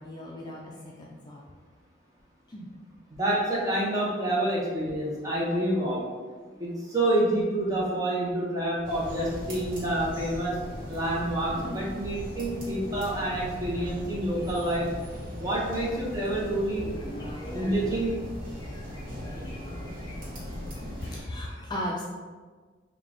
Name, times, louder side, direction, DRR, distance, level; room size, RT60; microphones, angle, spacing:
voice 1, 0.0-1.4 2.5-2.7 6.5-6.6 16.6-18.1 18.6-22.0, left 1 dB, 25° left, -3 dB, 0.3 m, -39 dB
voice 2, 3.1-6.0 6.6-10.6 10.9-14.9 15.4-16.9 17.5-18.1, right 1 dB, 20° right, -5 dB, 0.8 m, -28 dB
sound 1, 8.8-21.2, left 1 dB, 50° right, 1.2 m, -38 dB
3.7 x 2.4 x 3.5 m, 1.5 s
head